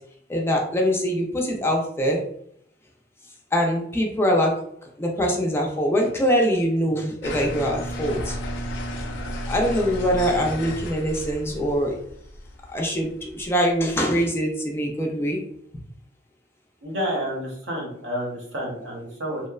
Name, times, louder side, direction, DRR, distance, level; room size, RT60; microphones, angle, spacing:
voice 1, 0.3-2.2 3.5-4.5 5.0-8.4 9.5-12.0 12.7-15.4, equal, 15° left, 0 dB, 0.4 m, -23 dB
sound 1, 7.2-13.9, equal, 80° left, 0.5 m, -33 dB
voice 2, 16.8-19.4, equal, 70° right, -1 dB, 0.8 m, -29 dB
2.9 x 2.1 x 2.3 m, 0.70 s
head